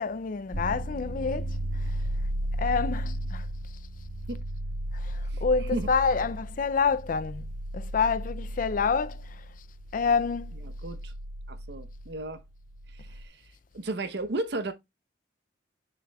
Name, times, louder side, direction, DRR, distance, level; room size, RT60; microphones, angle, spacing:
voice 1, 0.0-1.6 2.6-3.5 4.9-7.5 7.7-9.2 9.9-10.5, left 5 dB, 45° left, 0.4 m, -27 dB
sound 1, 0.5-13.3, right 1 dB, 90° right, 3.6 m, -35 dB
voice 2, 10.6-11.1 11.5-12.4 12.9-13.4 13.7-14.7, right 2 dB, 60° right, 0.8 m, -34 dB
6.7 x 6.7 x 2.3 m
head